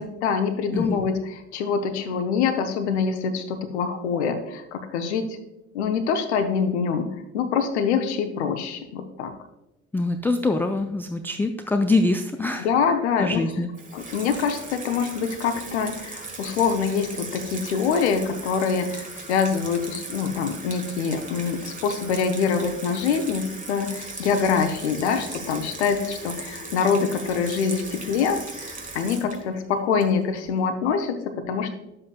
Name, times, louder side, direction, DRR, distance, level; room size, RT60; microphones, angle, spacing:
voice 1, 0.0-5.4 5.7-9.3 12.6-13.4 13.9-31.7, left 6 dB, 70° left, 7 dB, 0.8 m, -25 dB
voice 2, 9.9-12.7 13.2-13.7, left 2 dB, 5° left, 6 dB, 0.3 m, -24 dB
Water tap faucet / Sink (filling or washing), 13.7-30.5, right 3 dB, 20° right, 1.6 m, -38 dB
10.5 x 7.5 x 2.3 m, 0.91 s
figure-of-eight pair, 55°, 35 cm